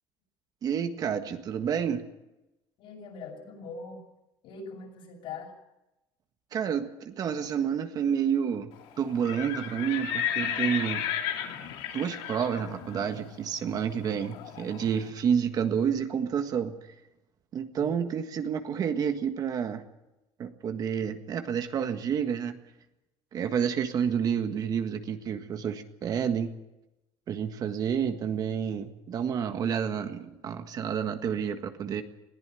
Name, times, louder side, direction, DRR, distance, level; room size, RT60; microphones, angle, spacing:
voice 1, 0.6-2.0 6.5-8.7 9.0-11.1 11.9-16.8 17.5-19.8 20.4-22.6 23.3-26.5 27.3-32.0, right 7 dB, 40° right, 7 dB, 1.7 m, -29 dB
voice 2, 2.8-4.0 4.4-5.5 17.8-18.0, left 4 dB, 65° left, 1 dB, 7.6 m, -42 dB
Livestock farm animals working animals, 9.1-14.9, left 9 dB, 85° left, 3.2 m, -34 dB
21.0 x 15.5 x 9.2 m, 0.94 s
cardioid pair, 145°, 10 cm